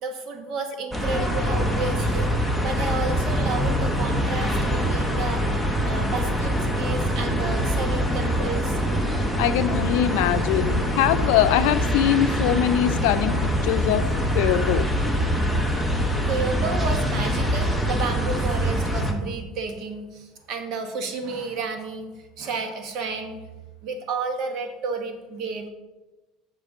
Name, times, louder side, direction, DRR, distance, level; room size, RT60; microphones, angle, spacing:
voice 1, 0.0-2.3 2.6-8.8 16.2-23.4 23.8-25.7, right 4 dB, 50° right, 6 dB, 1.1 m, -31 dB
sound 1, 0.9-19.1, equal, 5° right, 0.8 m, -24 dB
voice 2, 9.4-14.0 14.3-14.9, left 11 dB, 80° left, 11 dB, 0.5 m, -22 dB
9.4 x 6.6 x 3.5 m, 1.1 s
cardioid pair, 155°, 0 cm